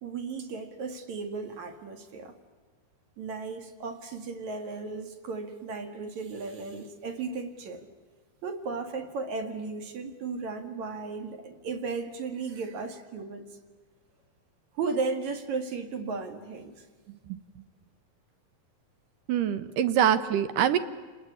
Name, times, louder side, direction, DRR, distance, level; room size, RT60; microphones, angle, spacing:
voice 1, 0.0-2.4 3.2-7.9 8.4-13.5 14.7-16.9, right 4 dB, 55° right, 7 dB, 2.9 m, -35 dB
voice 2, 19.3-20.8, right 9 dB, 70° right, 12 dB, 2.3 m, -24 dB
29.5 x 19.5 x 9.7 m, 1.4 s
omnidirectional pair, 4.5 m